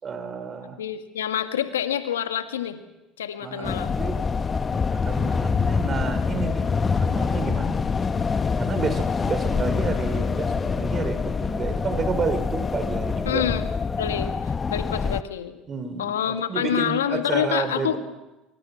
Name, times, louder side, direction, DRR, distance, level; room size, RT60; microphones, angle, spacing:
voice 1, 0.0-0.8 3.4-4.1 4.9-7.9 8.6-13.4 15.7-18.0, right 5 dB, 35° right, 8 dB, 5.1 m, -30 dB
voice 2, 0.8-2.8 3.2-4.0 13.3-13.7 14.0-14.3 14.7-15.6 16.0-18.0, left 10 dB, 90° left, 7 dB, 1.9 m, -27 dB
sound 1, 3.6-15.2, left 5 dB, 30° left, 1.0 m, -25 dB
25.5 x 24.5 x 6.1 m, 1.0 s
hypercardioid pair, 75°, 0 cm